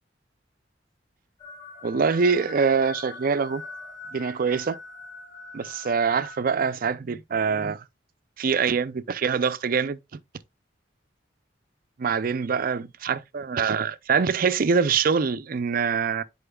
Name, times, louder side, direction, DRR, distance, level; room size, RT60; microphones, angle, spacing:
sound 1, 1.4-6.4, left 3 dB, 25° left, 1.1 m, -42 dB
voice 1, 1.8-3.6 4.1-4.8 5.5-7.8 8.4-10.0 12.0-16.2, right 5 dB, 50° right, 0.4 m, -24 dB
10.0 x 4.4 x 2.3 m
head